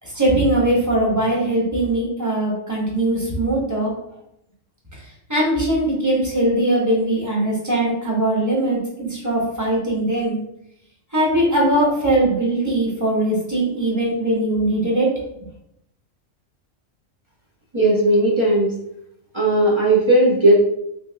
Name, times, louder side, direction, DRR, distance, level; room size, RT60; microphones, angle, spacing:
voice 1, 0.0-3.9 5.3-10.4 11.1-15.1, right 1 dB, 15° right, -5 dB, 1.0 m, -20 dB
voice 2, 17.7-18.7 19.3-20.5, right 1 dB, 35° right, -4 dB, 0.5 m, -16 dB
3.2 x 2.8 x 3.3 m, 0.79 s
omnidirectional pair, 1.3 m